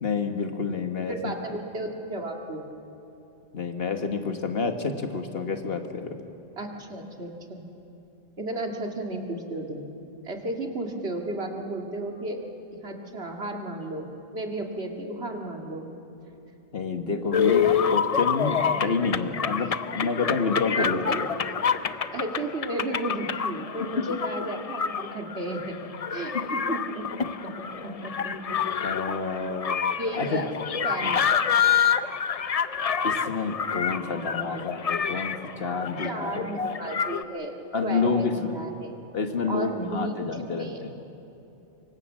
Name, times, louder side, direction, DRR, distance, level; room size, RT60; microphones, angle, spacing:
voice 1, 0.0-1.4 3.5-6.2 16.7-21.3 23.8-23.9 26.3-26.6 28.8-29.8 30.2-30.4 31.0-31.2 33.0-36.5 37.7-38.5 39.1-40.9, left 4 dB, 65° left, 6 dB, 1.7 m, -29 dB
voice 2, 1.1-2.7 6.6-7.7 8.4-9.9 10.2-12.4 12.8-15.9 17.1-17.7 18.8-18.9 19.6-19.7 20.0-20.4 20.8-21.2 22.1-25.8 26.1-28.6 29.1-29.2 30.0-30.5 30.8-31.3 36.0-39.0 39.5-40.8, right 1 dB, 75° right, 2 dB, 2.5 m, -34 dB
sound 1, 17.3-37.2, left 7 dB, 40° left, 0.6 m, -27 dB
25.5 x 23.5 x 7.4 m, 2.9 s
omnidirectional pair, 1.1 m